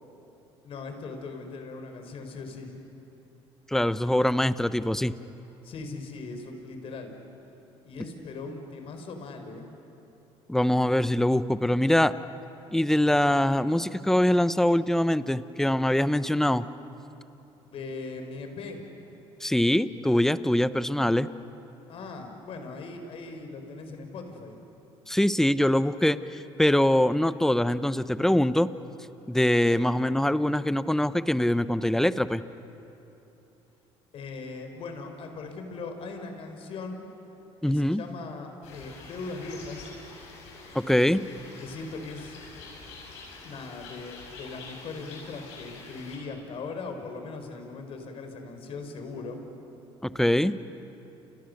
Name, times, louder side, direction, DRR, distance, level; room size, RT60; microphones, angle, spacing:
voice 1, 0.6-2.8 5.6-7.1 7.8-9.7 17.6-18.8 21.9-24.6 34.1-37.1 37.6-39.9 41.6-42.3 43.4-49.4, left 3 dB, 55° left, 5 dB, 4.6 m, -39 dB
voice 2, 3.7-5.1 10.5-12.1 12.7-16.7 19.4-21.3 25.1-28.7 29.3-32.4 37.6-38.0 40.7-41.2 50.0-50.6, left 1 dB, 5° left, 13 dB, 0.8 m, -23 dB
sound 1, 38.6-46.2, left 4 dB, 80° left, 7.5 m, -46 dB
29.5 x 29.5 x 6.6 m, 2.9 s
cardioid pair, 95°, 11 cm